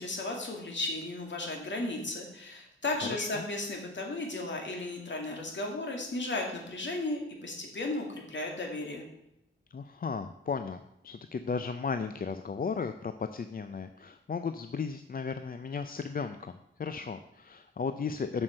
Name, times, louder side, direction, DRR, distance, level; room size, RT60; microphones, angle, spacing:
voice 1, 0.0-9.0, left 2 dB, 60° left, 1 dB, 2.1 m, -35 dB
voice 2, 3.1-3.5 9.7-18.4, left 5 dB, 45° left, 9 dB, 0.4 m, -35 dB
7.5 x 6.3 x 6.5 m, 0.81 s
wide cardioid pair, 130°, 21 cm